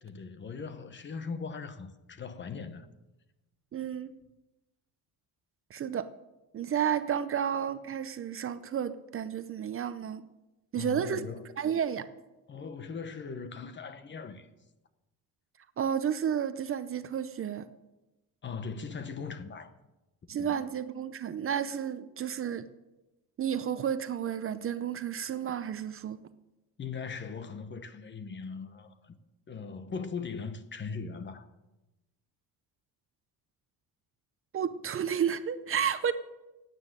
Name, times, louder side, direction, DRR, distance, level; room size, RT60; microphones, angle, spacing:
voice 1, 0.0-2.9 10.7-11.5 12.5-14.5 18.4-19.7 20.4-20.5 26.8-29.2 29.5-31.5, left 5 dB, 30° left, 1.1 m, -39 dB
voice 2, 3.7-4.1 5.7-6.1 6.5-10.2 10.7-11.2 11.6-12.1 15.8-17.6 20.3-22.7 23.4-26.2 34.5-36.1, right 8 dB, 35° right, 0.7 m, -31 dB
16.5 x 9.4 x 7.6 m
cardioid pair, 145°, 37 cm